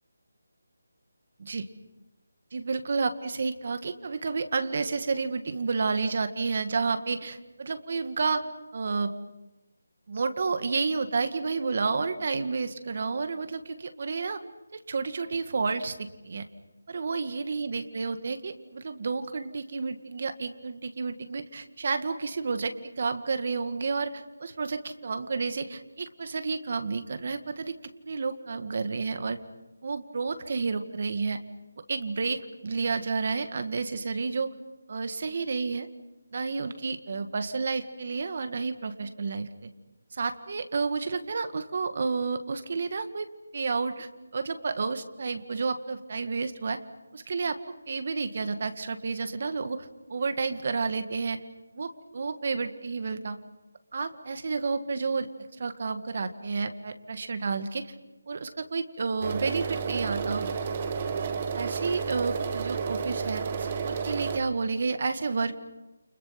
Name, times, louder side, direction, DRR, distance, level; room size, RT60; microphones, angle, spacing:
voice 1, 2.5-8.4 8.7-9.1 10.1-14.4 14.7-16.5 16.9-27.7 28.0-29.4 29.8-31.4 31.9-34.5 34.9-35.9 36.3-39.7 40.1-43.3 43.5-46.8 47.1-47.6 47.9-51.4 51.8-53.4 53.9-55.3 55.6-57.9 58.3-60.5 61.1-61.2 61.5-65.6, right 4 dB, 40° right, 9 dB, 1.9 m, -30 dB
sound 1, 59.2-64.4, right 5 dB, 25° right, 1.6 m, -31 dB
30.0 x 28.5 x 6.0 m, 1.0 s
figure-of-eight pair, 175°, 0 cm